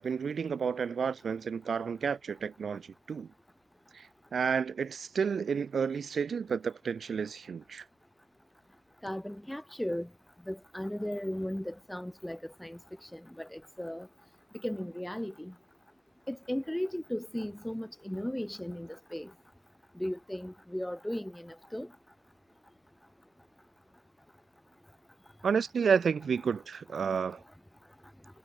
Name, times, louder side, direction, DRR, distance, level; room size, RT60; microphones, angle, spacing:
voice 1, 0.0-3.3 3.9-7.9 25.4-27.4, right 6 dB, 35° right, 0.8 m, -31 dB
voice 2, 9.0-10.1 10.5-14.1 14.6-15.5 16.3-19.3 20.0-21.9, left 1 dB, 5° left, 0.3 m, -36 dB
supercardioid pair, 95°, 0 cm